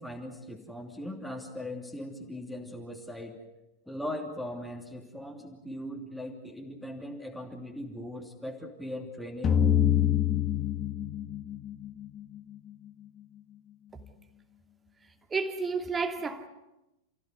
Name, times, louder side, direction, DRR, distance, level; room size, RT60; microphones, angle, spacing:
voice 1, 0.0-3.4 3.9-9.6, left 1 dB, ahead, 2.9 m, -39 dB
sound 1, 9.4-12.4, left 10 dB, 25° left, 2.0 m, -26 dB
voice 2, 15.3-16.5, right 4 dB, 15° right, 2.6 m, -31 dB
29.0 x 15.5 x 9.6 m
figure-of-eight pair, 90°, 0 cm